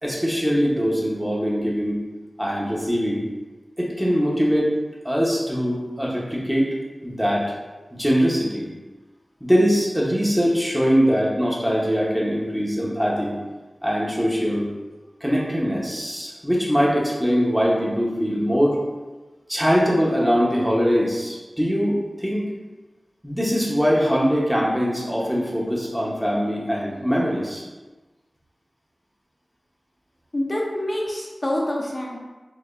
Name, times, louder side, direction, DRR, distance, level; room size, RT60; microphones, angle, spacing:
voice 1, 0.0-2.0 2.4-3.3 3.8-4.7 5.0-6.7 7.0-7.5 7.9-8.7 9.4-13.4 13.8-14.7 15.2-18.8 19.5-22.4 23.2-27.6, equal, 5° right, -4 dB, 0.9 m, -22 dB
voice 2, 30.3-32.2, left 1 dB, 40° left, -3 dB, 0.6 m, -26 dB
4.8 x 2.8 x 2.5 m, 1.2 s
wide cardioid pair, 60°, 0 cm